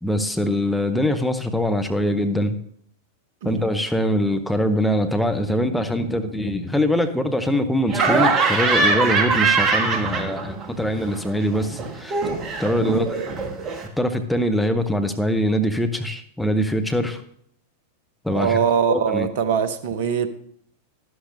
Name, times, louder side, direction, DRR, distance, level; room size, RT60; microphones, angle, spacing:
voice 1, 0.0-2.6 3.4-12.2 12.6-13.2 14.0-17.2 18.2-18.6 18.9-19.3, equal, 5° left, 7 dB, 0.9 m, -23 dB
Laughter, 7.9-10.7 11.0-13.9, right 4 dB, 30° right, 1.4 m, -22 dB
voice 2, 12.8-13.3 18.3-20.3, right 7 dB, 50° right, 12 dB, 0.9 m, -23 dB
11.5 x 11.0 x 2.7 m, 0.68 s
figure-of-eight pair, 90°, 0 cm